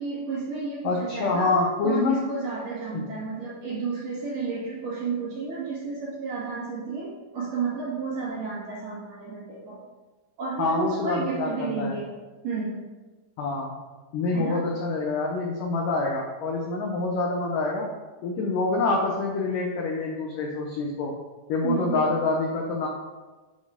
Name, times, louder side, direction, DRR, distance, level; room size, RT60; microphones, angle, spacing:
voice 1, 0.0-1.5 1.8-9.8 10.4-12.1 12.4-12.8 14.3-14.6 21.6-22.1, right 4 dB, 55° right, -7 dB, 3.8 m, -31 dB
voice 2, 0.8-2.2 2.9-3.0 10.6-12.0 13.4-13.7 14.1-17.9 18.2-21.1 21.5-22.9, left 3 dB, 80° left, 0 dB, 1.9 m, -26 dB
8.9 x 5.3 x 5.1 m, 1.2 s
omnidirectional pair, 5.1 m